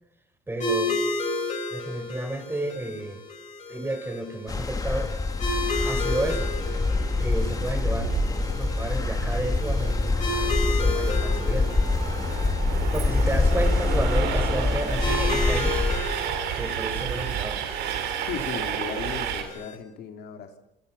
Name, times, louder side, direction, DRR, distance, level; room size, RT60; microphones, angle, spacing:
voice 1, 0.5-1.0 1.7-3.2 3.7-5.1 5.8-6.5 7.2-8.1 8.5-10.2 10.8-11.7 12.9-15.8 16.5-17.7, right 2 dB, 15° right, 9 dB, 4.1 m, -31 dB
sound 1, 0.6-19.7, left 2 dB, 40° left, 7.4 m, -33 dB
sound 2, 4.5-16.0, left 3 dB, 20° left, 2.7 m, -25 dB
Train, 6.0-19.4, right 9 dB, 85° right, 3.8 m, -32 dB
voice 2, 18.3-20.6, left 7 dB, 70° left, 5 dB, 3.5 m, -36 dB
28.0 x 26.5 x 5.8 m, 0.82 s
cardioid pair, 110°, 17 cm